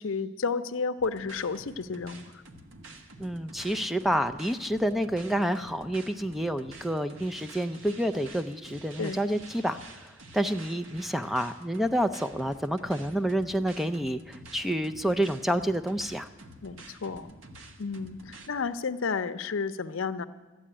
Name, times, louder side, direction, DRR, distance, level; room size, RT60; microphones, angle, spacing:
voice 1, 0.0-2.4 9.0-9.2 16.6-17.4 17.8-20.3, left 5 dB, 75° left, 11 dB, 0.6 m, -32 dB
sound 1, 1.0-18.5, right 2 dB, 75° right, 1.2 m, -49 dB
voice 2, 3.2-16.3, equal, ahead, 10 dB, 0.3 m, -29 dB
13.0 x 8.5 x 10.0 m, 1.3 s
head